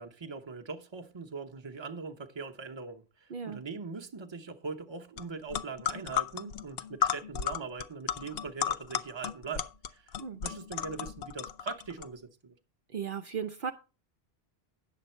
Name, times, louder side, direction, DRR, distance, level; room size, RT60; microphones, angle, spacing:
voice 1, 0.0-10.1 10.4-12.6, right 4 dB, 30° right, 0.8 m, -41 dB
voice 2, 3.3-3.6 10.2-10.4 12.9-13.7, right 7 dB, 60° right, 0.8 m, -36 dB
sound 1, 5.2-5.3 5.5-12.1, left 9 dB, 70° left, 0.8 m, -34 dB
9.3 x 7.3 x 4.4 m
omnidirectional pair, 1.1 m